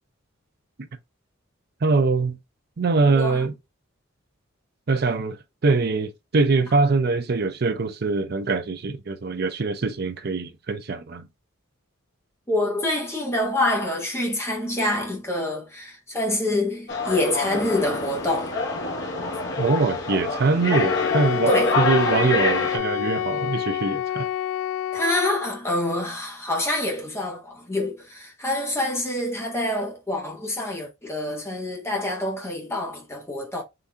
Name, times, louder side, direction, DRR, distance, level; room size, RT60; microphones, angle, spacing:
voice 1, 1.8-2.4 2.8-3.5 4.9-5.4 5.6-11.3 19.6-24.3, right 3 dB, 50° right, 0.5 m, -23 dB
voice 2, 3.0-3.5 12.5-18.6 21.5-21.8 24.9-33.6, left 1 dB, 15° left, 1.1 m, -26 dB
sound 1, 16.9-22.8, left 3 dB, 60° left, 1.0 m, -26 dB
Wind instrument woodwind instrument, 20.7-25.6, left 11 dB, 85° left, 0.3 m, -28 dB
3.9 x 2.7 x 3.4 m
head